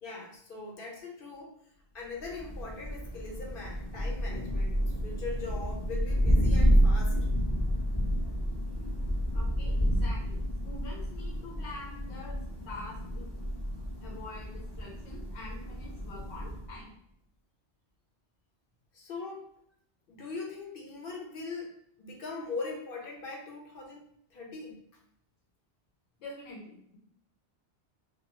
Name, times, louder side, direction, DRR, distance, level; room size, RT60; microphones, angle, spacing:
voice 1, 0.0-1.6 1.9-7.3 18.9-19.5 20.1-21.7 22.0-24.8, left 3 dB, 60° left, -1 dB, 0.8 m, -41 dB
Thunder, 2.2-16.8, equal, 30° left, 0.5 m, -30 dB
voice 2, 9.3-12.4 12.7-13.4 14.0-16.9 26.2-27.0, left 2 dB, 80° left, -3 dB, 1.0 m, -46 dB
2.3 x 2.3 x 2.9 m, 0.69 s
omnidirectional pair, 1.1 m